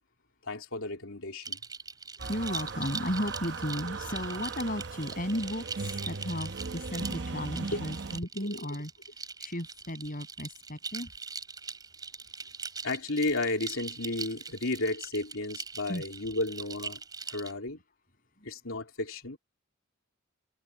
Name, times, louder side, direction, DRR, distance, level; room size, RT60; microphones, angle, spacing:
voice 1, 0.4-1.6 7.7-7.8 8.4-8.7 12.8-17.0 17.3-17.8 18.4-19.4, left 2 dB, 75° left, 3.3 m, -33 dB
sound 1, 1.4-17.5, right 5 dB, 20° right, 7.7 m, -42 dB
voice 2, 2.2-11.1 15.9-16.0, equal, 40° left, 7.8 m, -35 dB
sound 2, 2.2-8.2, right 4 dB, 55° right, 0.9 m, -38 dB
head